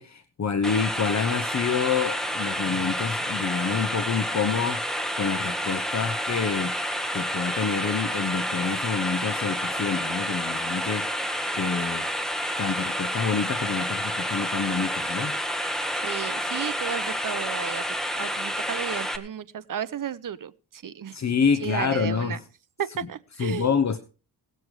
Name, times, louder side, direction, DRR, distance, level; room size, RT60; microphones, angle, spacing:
voice 1, 0.0-4.8 5.2-6.8 7.1-11.1 11.5-12.1 12.6-15.3 21.1-22.4 23.4-24.0, left 6 dB, 40° left, 1.0 m, -27 dB
sound 1, 0.6-19.2, equal, ahead, 1.5 m, -29 dB
voice 2, 16.0-17.8 18.1-21.2 21.6-22.4 22.8-23.8, right 8 dB, 50° right, 0.9 m, -33 dB
18.0 x 7.8 x 4.9 m
wide cardioid pair, 120°, 41 cm